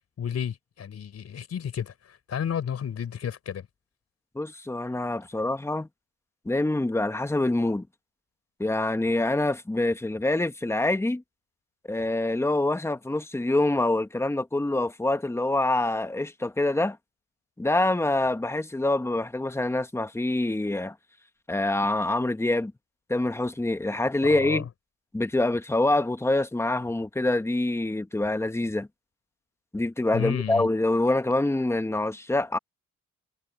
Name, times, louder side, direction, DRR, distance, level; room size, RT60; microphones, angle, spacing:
voice 1, 0.2-3.7 24.3-24.6 30.1-30.7, left 8 dB, 55° left, 4.1 m, -32 dB
voice 2, 4.3-5.9 6.4-7.9 8.6-11.2 11.9-17.0 17.6-20.9 21.5-22.7 23.1-24.7 25.1-28.9 29.7-32.6, left 2 dB, 10° left, 1.4 m, -25 dB
cardioid pair, 90°, 30 cm